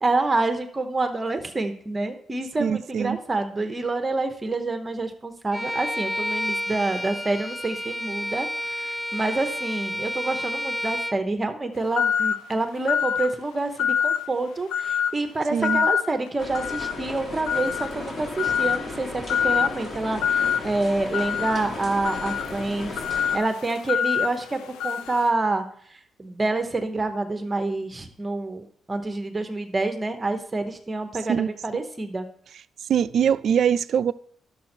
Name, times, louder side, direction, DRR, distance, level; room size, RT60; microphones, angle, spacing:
voice 1, 0.0-23.0 23.3-25.6 26.2-32.3, right 2 dB, 25° right, 1.0 m, -27 dB
voice 2, 2.6-3.2 15.5-15.8 31.3-31.5 32.9-34.1, right 8 dB, 60° right, 0.3 m, -22 dB
Bowed string instrument, 5.5-11.2, equal, 15° left, 0.6 m, -30 dB
sound 1, 11.9-12.5 12.9-13.3 13.8-14.3 14.7-15.2 15.6-16.1 16.5-17.0 17.5-17.9 18.4-18.8 19.3-19.7 20.2-20.6 21.1-25.3, left 8 dB, 85° left, 0.4 m, -25 dB
sound 2, 16.4-23.4, left 2 dB, 40° left, 2.0 m, -35 dB
11.0 x 6.7 x 4.4 m
cardioid pair, 90°, 0 cm